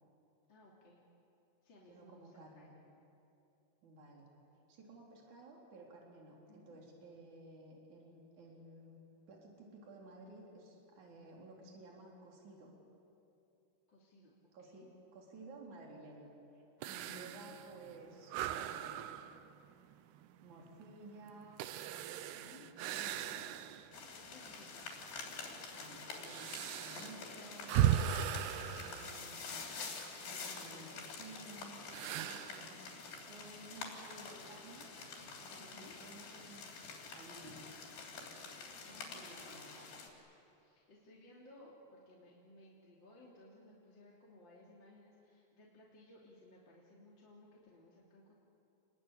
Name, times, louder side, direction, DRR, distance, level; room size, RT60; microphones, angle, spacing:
voice 1, 0.5-1.0 1.6-2.8 6.5-6.8 13.9-14.9 22.3-22.9 24.2-24.8 35.6-35.9 38.8-39.6 40.5-48.3, left 2 dB, 30° left, -5 dB, 3.2 m, -60 dB
voice 2, 1.9-2.7 3.8-4.3 4.7-9.0 9.3-12.7 14.5-19.2 20.4-23.6 25.7-27.9 28.5-29.8 30.2-32.8 33.3-35.0 35.4-36.7 37.1-37.8 38.7-40.0 41.6-41.7, right 2 dB, 50° right, -1 dB, 5.0 m, -55 dB
sound 1, 16.8-24.0 24.5-24.6 25.3-29.9 31.9-32.7, right 11 dB, 80° right, 2.8 m, -38 dB
sound 2, 23.9-40.1, left 4 dB, 85° left, 5.6 m, -48 dB
29.0 x 21.0 x 9.8 m, 2.8 s
omnidirectional pair, 4.7 m